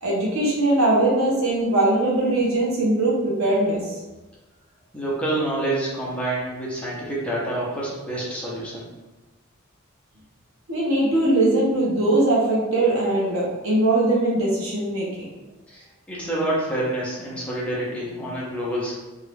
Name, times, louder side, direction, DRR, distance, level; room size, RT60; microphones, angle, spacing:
voice 1, 0.0-3.8 10.7-15.3, right 2 dB, 85° right, -4 dB, 0.9 m, -21 dB
voice 2, 4.9-8.9 15.7-18.9, right 1 dB, 5° left, -6 dB, 0.7 m, -27 dB
2.7 x 2.4 x 3.4 m, 1.1 s
head